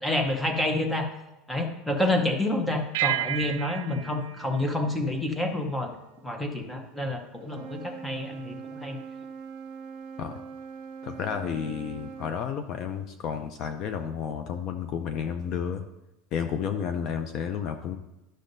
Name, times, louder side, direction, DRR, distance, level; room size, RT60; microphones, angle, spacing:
voice 1, 0.0-1.1 1.5-5.9 6.2-9.0, left 1 dB, 5° left, 4 dB, 0.8 m, -28 dB
sound 1, 2.9-5.7, right 13 dB, 85° right, 0.4 m, -32 dB
Wind instrument woodwind instrument, 7.4-12.4, right 6 dB, 50° right, 0.7 m, -41 dB
voice 2, 11.0-15.8 16.3-18.0, left 7 dB, 40° left, 8 dB, 0.4 m, -31 dB
12.0 x 6.3 x 2.6 m, 0.96 s
supercardioid pair, 165°, 0 cm